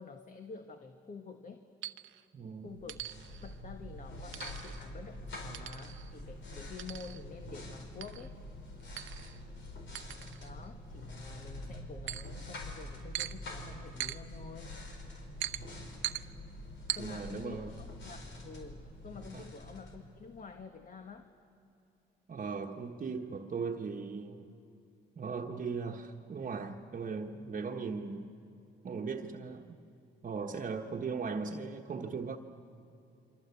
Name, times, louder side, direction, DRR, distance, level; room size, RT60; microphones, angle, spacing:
voice 1, 0.0-1.7 2.6-3.0 3.4-8.4 10.4-14.8 16.9-21.3, left 4 dB, 40° left, 6 dB, 1.5 m, -48 dB
sound 1, 1.8-2.2 2.9-3.5 4.3-4.8 5.5-6.1 6.8-7.2 8.0-8.3 9.0-9.4 9.9-10.7 12.1-12.4 13.1-13.4 14.0-14.2 15.4-15.6 16.0-16.2 16.9-17.0, right 13 dB, 75° right, 0.8 m, -40 dB
voice 2, 2.3-2.8 17.0-17.7 19.3-19.4 22.3-24.5 25.1-28.3 28.8-29.8 30.2-32.4, right 5 dB, 40° right, 3 dB, 1.3 m, -38 dB
sound 2, 2.7-20.6, left 1 dB, 65° left, 5.0 m, -46 dB
27.5 x 25.0 x 8.4 m, 2.7 s
cardioid pair, 90°, 20 cm